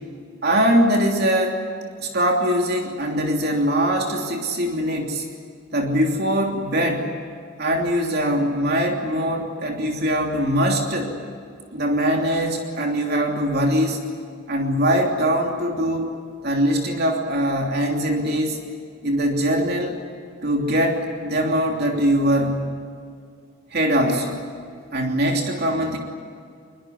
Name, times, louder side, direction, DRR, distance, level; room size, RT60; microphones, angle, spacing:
voice 1, 0.4-1.6 2.0-5.3 5.7-7.1 7.6-11.1 11.7-14.0 14.5-16.1 16.4-18.6 19.0-20.0 20.4-22.7 23.7-24.4 24.9-26.0, equal, 50° right, 2 dB, 3.1 m, -22 dB
23.0 x 23.0 x 9.5 m, 2.3 s
head